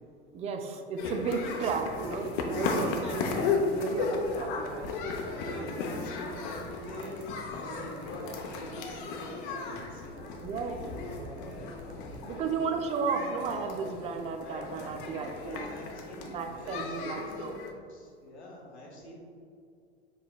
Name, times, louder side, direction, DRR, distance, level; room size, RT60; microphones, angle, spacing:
voice 1, 0.3-4.9 5.5-5.9 10.4-10.8 12.2-15.7 16.2-17.5, right 5 dB, 20° right, 5 dB, 0.4 m, -34 dB
sound 1, 1.0-17.7, left 3 dB, 50° left, 0.7 m, -35 dB
voice 2, 2.9-3.3 5.3-7.1 7.5-10.0 10.8-11.7 12.2-12.5 14.4-14.7 15.3-17.6 17.9-19.1, left 1 dB, 80° left, -2 dB, 1.1 m, -46 dB
sound 2, 5.8-12.4 12.8-12.9 13.1-13.5 14.2-14.3 15.0-15.1 15.8-15.9 16.3-16.7 17.2-17.3 17.6-17.7, right 2 dB, 75° right, 0.8 m, -56 dB
5.4 x 3.9 x 2.2 m, 2.3 s
figure-of-eight pair, 85°, 33 cm